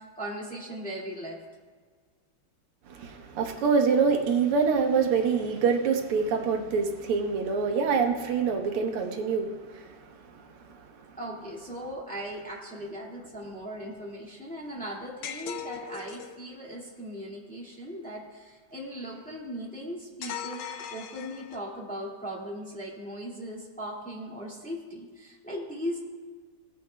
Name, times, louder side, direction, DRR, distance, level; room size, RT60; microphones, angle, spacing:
voice 1, 0.0-1.4 11.2-26.1, equal, 5° left, -4 dB, 1.9 m, -38 dB
voice 2, 2.9-11.1, right 5 dB, 85° right, 4 dB, 1.9 m, -26 dB
sound 1, 15.2-16.4 20.2-21.8, left 8 dB, 85° left, 1.6 m, -39 dB
18.5 x 9.6 x 2.3 m, 1.5 s
omnidirectional pair, 2.4 m